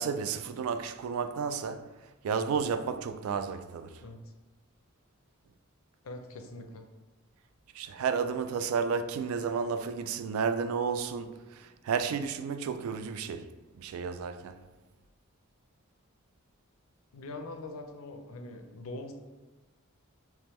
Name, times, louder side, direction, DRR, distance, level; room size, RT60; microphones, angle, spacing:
voice 1, 0.0-1.9 2.2-4.0 7.7-14.6, right 6 dB, 80° right, 0.3 m, -32 dB
voice 2, 6.0-6.9 17.1-19.1, left 2 dB, 80° left, 0.5 m, -42 dB
3.5 x 3.0 x 3.0 m
head